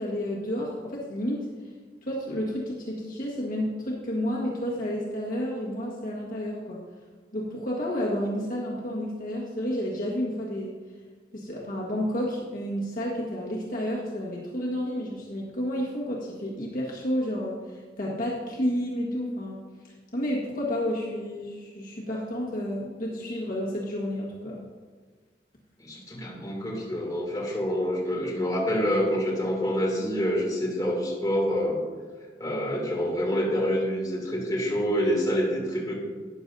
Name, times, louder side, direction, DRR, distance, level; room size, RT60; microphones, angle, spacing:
voice 1, 0.0-1.5 2.0-6.8 7.3-10.7 11.3-19.6 20.1-24.6, equal, 50° left, -4 dB, 1.6 m, -31 dB
voice 2, 25.8-31.8 32.4-35.9, equal, 20° left, -4 dB, 2.6 m, -27 dB
13.0 x 9.7 x 2.7 m, 1.5 s
head